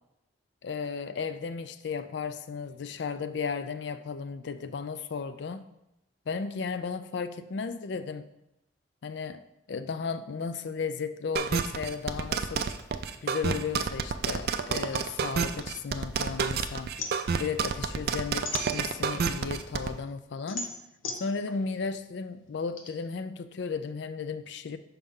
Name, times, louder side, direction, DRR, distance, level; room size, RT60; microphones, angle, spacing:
voice 1, 0.6-5.6 6.3-8.3 9.0-9.4 9.7-12.7 13.2-16.9 17.4-20.7 21.2-24.8, left 5 dB, 60° left, 12 dB, 0.4 m, -34 dB
sound 1, 11.4-19.9, right 6 dB, 50° right, 0.4 m, -29 dB
sound 2, 14.9-16.4 16.7-19.3 19.7-22.9, left 3 dB, 90° left, 0.8 m, -39 dB
5.8 x 5.3 x 3.7 m, 0.87 s
head